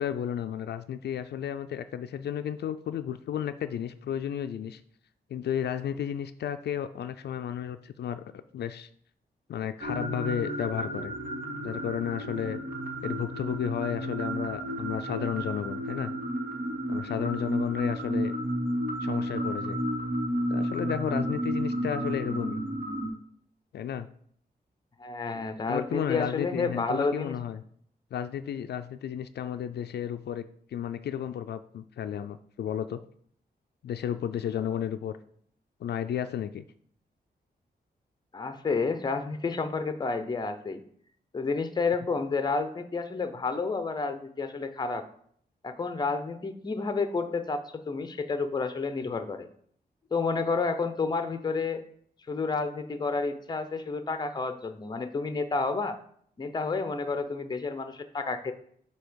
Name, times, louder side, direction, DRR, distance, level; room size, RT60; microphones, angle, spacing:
voice 1, 0.0-4.8 5.3-8.2 8.5-8.9 9.5-11.1 11.6-12.6 13.0-16.1 16.9-18.3 19.0-19.8 20.5-22.6 23.7-24.1 25.7-27.6 28.1-30.4 30.7-33.0 33.8-35.1 35.8-36.6, left 9 dB, 80° left, 10 dB, 0.4 m, -33 dB
sound 1, 9.8-23.1, right 1 dB, 60° right, 1.8 m, -32 dB
voice 2, 25.0-27.4 38.3-40.8 41.3-45.1 45.6-49.5 50.1-51.8 52.3-56.0 56.4-58.5, left 4 dB, 25° left, 9 dB, 0.6 m, -30 dB
8.1 x 2.9 x 6.2 m, 0.62 s
wide cardioid pair, 160°, 17 cm